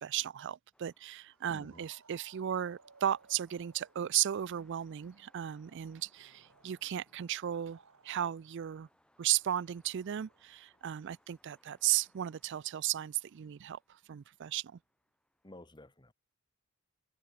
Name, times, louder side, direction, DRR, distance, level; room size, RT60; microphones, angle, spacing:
voice 1, 0.0-7.8 8.0-8.9 9.2-14.7, right 11 dB, 55° right, 0.4 m, -35 dB
sound 1, 0.7-15.5, left 1 dB, 5° left, 7.7 m, -72 dB
sound 2, 1.3-8.7 8.9-12.8, right 4 dB, 80° right, 1.7 m, -65 dB
voice 2, 1.5-1.8 15.4-16.1, left 1 dB, 20° left, 1.7 m, -53 dB
open air
head